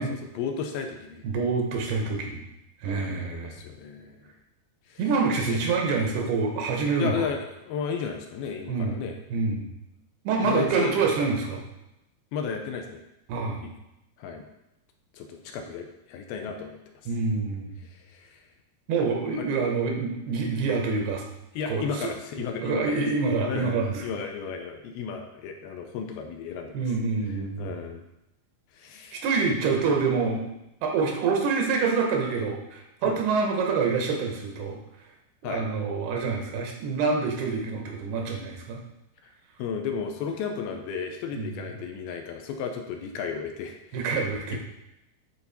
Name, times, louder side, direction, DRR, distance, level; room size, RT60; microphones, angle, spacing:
voice 1, 0.0-1.2 2.8-4.3 4.9-5.0 5.5-5.6 7.0-9.2 10.4-11.0 12.3-13.0 13.6-13.7 14.2-14.5 15.1-16.8 17.8-18.5 19.4-19.5 21.6-23.0 23.4-26.8 27.6-28.0 28.7-29.2 33.0-33.2 35.4-35.7 39.2-39.3 39.6-44.1, left 6 dB, 85° left, 4 dB, 2.6 m, -34 dB
voice 2, 1.2-2.4 2.8-3.6 5.0-7.2 8.7-9.0 9.3-9.7 10.2-11.6 13.3-13.6 17.1-17.7 18.9-21.2 21.7-22.1 22.6-24.0 26.7-27.7 29.1-30.5 30.8-34.8 35.4-38.8 41.4-41.5 43.9-44.6, right 4 dB, 90° right, 1 dB, 3.2 m, -26 dB
10.5 x 4.1 x 4.2 m, 0.88 s
omnidirectional pair, 4.5 m